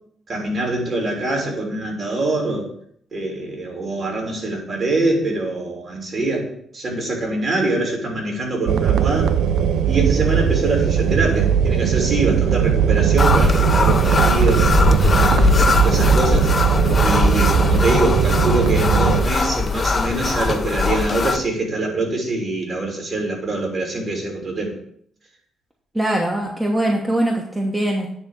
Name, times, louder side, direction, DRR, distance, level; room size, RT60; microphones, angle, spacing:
voice 1, 0.3-2.7 3.1-6.5 6.7-9.3 9.9-15.3 15.8-16.5 17.0-24.7, right 2 dB, 45° right, 0 dB, 3.2 m, -24 dB
sound 1, 8.7-19.2, right 8 dB, 80° right, 0.5 m, -18 dB
sound 2, 13.2-21.4, left 4 dB, 35° left, 0.7 m, -20 dB
voice 2, 25.9-28.1, right 1 dB, 10° right, 0 dB, 1.2 m, -21 dB
9.5 x 3.5 x 6.7 m, 0.66 s
cardioid pair, 90°, 0 cm